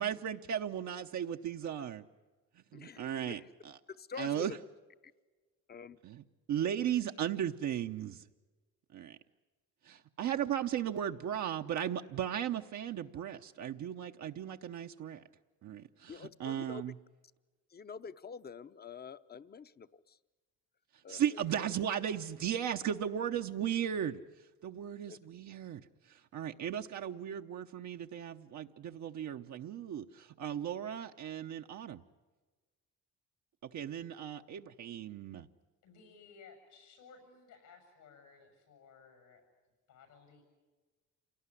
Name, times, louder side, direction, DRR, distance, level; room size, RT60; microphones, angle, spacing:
voice 1, 0.0-2.1 2.7-3.4 3.6-3.7 4.2-4.5 6.0-8.3 8.9-9.2 9.8-15.2 15.6-16.9 21.1-24.2 24.6-25.8 26.1-32.0 33.6-35.5, right 9 dB, 70° right, 4 dB, 0.9 m, -36 dB
voice 2, 2.7-3.5 3.9-4.5 5.7-6.0 6.8-6.9 16.1-16.9 17.7-20.2 21.0-21.4 25.1-25.2 26.7-26.8, left 6 dB, 30° left, 13 dB, 0.8 m, -47 dB
voice 3, 35.8-39.5 39.9-40.4, left 5 dB, 85° left, 6 dB, 7.2 m, -58 dB
27.5 x 18.5 x 9.9 m, 1.3 s
cardioid pair, 90°, 30 cm